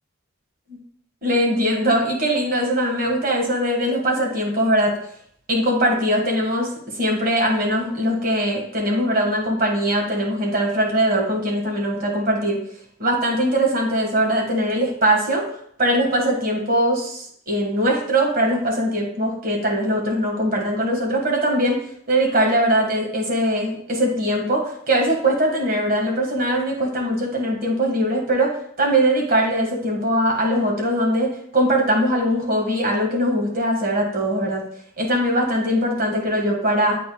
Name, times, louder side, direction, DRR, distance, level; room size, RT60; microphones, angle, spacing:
voice 1, 1.2-5.0 5.5-6.7 6.9-12.6 13.0-15.4 15.8-21.8 22.1-34.6 35.0-37.0, right 1 dB, 45° right, 0 dB, 1.7 m, -21 dB
10.5 x 4.1 x 2.3 m, 0.66 s
head